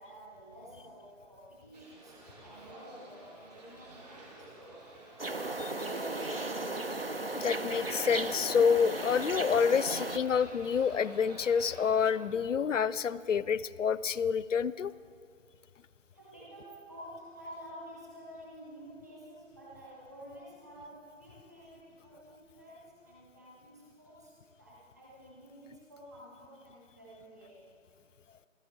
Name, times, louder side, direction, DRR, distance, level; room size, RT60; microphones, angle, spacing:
voice 1, 0.0-4.5 5.4-6.8 16.1-27.7, equal, 15° right, -7 dB, 1.5 m, -50 dB
sound 1, 1.7-12.1, right 2 dB, 30° right, 2.5 m, -50 dB
sound 2, 5.2-10.2, right 2 dB, 50° right, 0.4 m, -36 dB
voice 2, 7.3-14.9, left 6 dB, 70° left, 18 dB, 0.5 m, -28 dB
14.5 x 13.5 x 4.4 m, 2.2 s
figure-of-eight pair, 170°, 39 cm